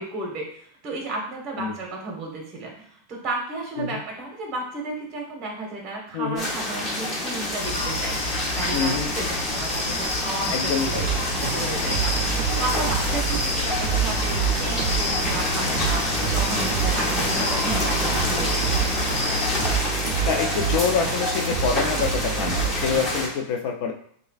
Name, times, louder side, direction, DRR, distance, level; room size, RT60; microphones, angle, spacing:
voice 1, 0.0-11.0 11.5-12.1 12.6-18.9, right 2 dB, 30° right, 0 dB, 1.2 m, -33 dB
voice 2, 6.1-6.5 8.7-9.1 10.5-11.1 20.2-23.9, left 6 dB, 50° left, 3 dB, 0.6 m, -26 dB
sound 1, 6.4-23.3, left 1 dB, 20° left, 0.8 m, -28 dB
sound 2, 7.6-19.8, left 2 dB, 75° left, 0.9 m, -30 dB
sound 3, 10.8-23.3, right 8 dB, 65° right, 0.4 m, -28 dB
6.4 x 2.3 x 2.4 m, 0.63 s
supercardioid pair, 155°, 0 cm